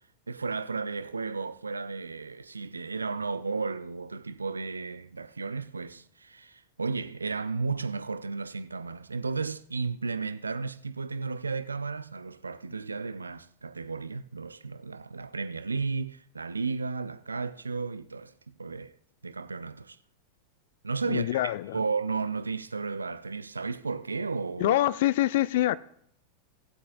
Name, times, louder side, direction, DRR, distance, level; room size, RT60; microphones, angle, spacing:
voice 1, 0.3-18.9 19.2-20.0 20.8-24.8, right 4 dB, 75° right, 0.4 m, -34 dB
voice 2, 21.1-21.8 24.6-25.8, left 14 dB, 55° left, 0.3 m, -25 dB
18.0 x 8.1 x 2.5 m
figure-of-eight pair, 90°, 0 cm